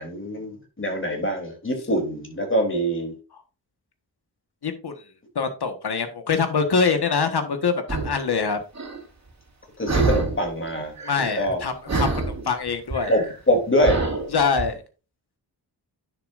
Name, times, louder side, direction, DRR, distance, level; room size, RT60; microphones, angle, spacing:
voice 1, 0.0-3.1 9.8-11.6 13.1-14.0, equal, 30° left, 2 dB, 3.1 m, -24 dB
voice 2, 4.6-4.9 5.3-8.6 11.0-13.1 14.3-14.8, left 5 dB, 70° left, 7 dB, 1.5 m, -24 dB
sound 1, 7.9-8.2 8.8-9.0 9.9-10.5 10.8-11.6 11.9-14.7, right 3 dB, 40° right, 2.4 m, -26 dB
10.0 x 6.8 x 2.6 m, 0.32 s
wide cardioid pair, 95°, 41 cm